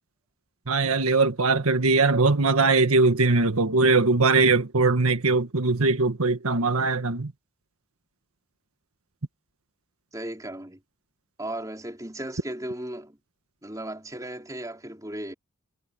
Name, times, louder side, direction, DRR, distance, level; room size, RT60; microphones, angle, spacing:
voice 1, 0.7-7.3, right 3 dB, 85° right, 1.6 m, -21 dB
voice 2, 10.1-10.8 11.4-13.2 13.6-15.3, right 1 dB, 15° right, 4.7 m, -36 dB
head